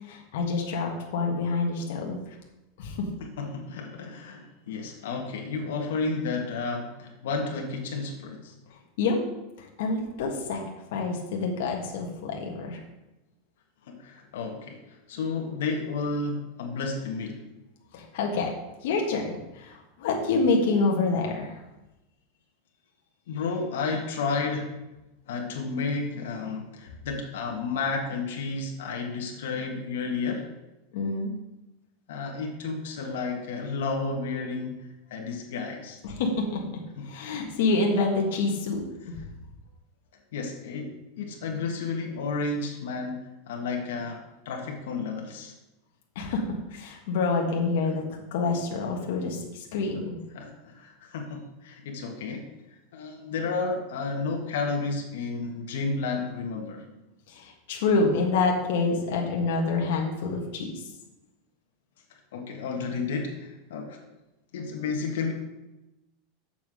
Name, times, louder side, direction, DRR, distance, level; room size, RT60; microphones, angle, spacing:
voice 1, 0.1-2.2 2.8-3.1 9.0-9.2 9.8-10.6 10.9-12.8 17.9-18.5 18.8-21.5 30.9-31.3 36.0-36.6 37.0-39.1 46.1-48.0 48.3-50.2 57.3-60.8, left 3 dB, 65° left, 0 dB, 1.6 m, -27 dB
voice 2, 3.2-8.5 13.9-17.4 23.3-24.8 25.3-30.5 32.1-36.0 37.0-37.1 40.3-43.2 43.5-45.5 50.3-52.5 52.9-56.8 62.3-64.0 64.5-65.3, left 4 dB, 85° left, 1 dB, 1.6 m, -32 dB
7.4 x 6.0 x 6.3 m, 0.97 s
supercardioid pair, 170°, 0 cm